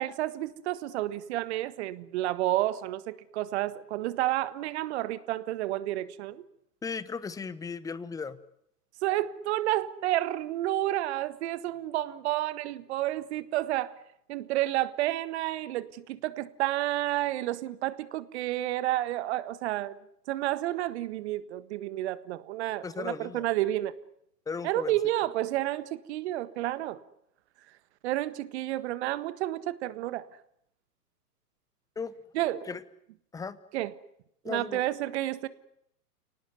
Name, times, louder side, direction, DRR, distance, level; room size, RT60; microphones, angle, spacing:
voice 1, 0.0-6.4 9.0-13.9 14.3-20.0 20.3-23.9 24.6-27.0 28.0-30.3 32.3-32.7 33.7-33.9 34.4-35.5, right 15 dB, 45° right, 15 dB, 1.6 m, -30 dB
voice 2, 6.8-8.4 22.8-23.5 24.5-25.0 32.0-32.1 32.7-32.8 33.3-33.6 34.4-34.8, left 5 dB, 5° left, 17 dB, 1.0 m, -36 dB
30.0 x 18.5 x 9.5 m, 0.75 s
figure-of-eight pair, 115°, 47 cm